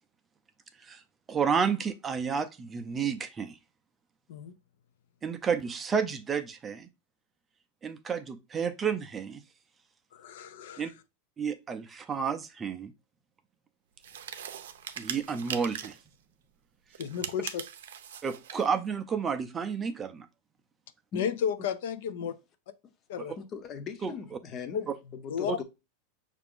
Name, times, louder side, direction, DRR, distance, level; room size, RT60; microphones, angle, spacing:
voice 1, 1.3-3.6 5.2-6.9 7.8-9.4 10.8-10.9 11.4-12.9 15.0-16.0 18.2-20.3 23.2-23.3 24.0-24.1 25.5-25.6, right 6 dB, 15° right, 0.4 m, -31 dB
voice 2, 10.1-10.8 17.0-17.6 21.1-22.3 23.1-23.3 24.7-24.8 25.3-25.6, left 8 dB, 70° left, 0.5 m, -32 dB
sound 1, 14.0-16.1 16.9-18.7, right 9 dB, 90° right, 0.5 m, -40 dB
voice 3, 23.4-25.6, left 6 dB, 30° left, 0.6 m, -41 dB
5.7 x 2.5 x 3.5 m
supercardioid pair, 150°, 0 cm